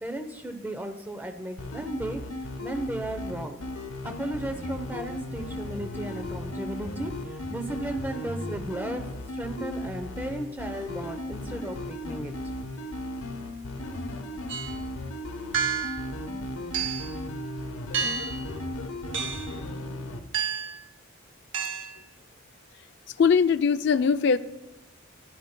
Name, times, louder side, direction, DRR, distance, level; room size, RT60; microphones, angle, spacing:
voice 1, 0.0-3.6 4.0-9.1 9.3-12.3, right 1 dB, 10° right, 0.7 m, -35 dB
sound 1, 1.6-20.2, left 1 dB, 75° left, 0.9 m, -36 dB
sound 2, 14.5-14.8 15.5-16.1 16.7-17.1 17.9-18.4 19.1-19.6 20.3-20.8 21.5-22.0, right 6 dB, 55° right, 0.8 m, -30 dB
voice 2, 23.2-24.4, left 6 dB, 50° left, 0.3 m, -21 dB
14.5 x 11.0 x 2.2 m
head